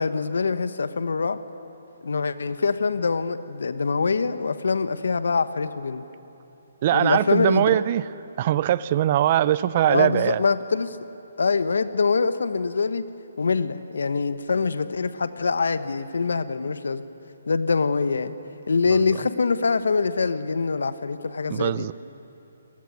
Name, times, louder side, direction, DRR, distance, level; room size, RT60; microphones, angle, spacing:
voice 1, 0.0-1.4 2.0-6.0 6.9-7.8 9.9-11.0 11.4-13.0 13.4-17.1 17.5-18.3 18.7-21.9, left 4 dB, 75° left, 12 dB, 1.2 m, -24 dB
voice 2, 6.8-8.1 8.4-10.4 18.9-19.2 21.5-21.9, right 12 dB, 40° right, 17 dB, 0.6 m, -22 dB
27.0 x 19.5 x 9.6 m, 3.0 s
hypercardioid pair, 150°, 0 cm